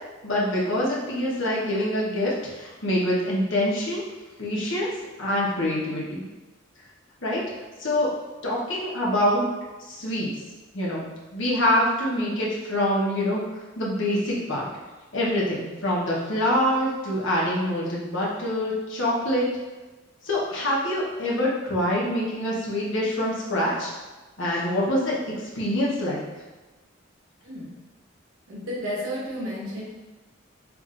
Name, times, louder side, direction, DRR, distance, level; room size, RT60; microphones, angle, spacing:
voice 1, 0.2-4.0 4.4-4.9 5.2-6.2 7.2-7.4 7.8-8.1 8.4-9.5 9.9-10.3 10.7-11.0 11.3-13.4 13.7-14.7 15.1-19.5 20.2-23.9 24.4-25.1 25.6-26.2, left 1 dB, 70° left, -5 dB, 1.1 m, -25 dB
voice 2, 27.4-27.8 28.5-29.8, equal, 85° right, -5 dB, 1.2 m, -32 dB
6.0 x 2.6 x 2.5 m, 1.2 s
head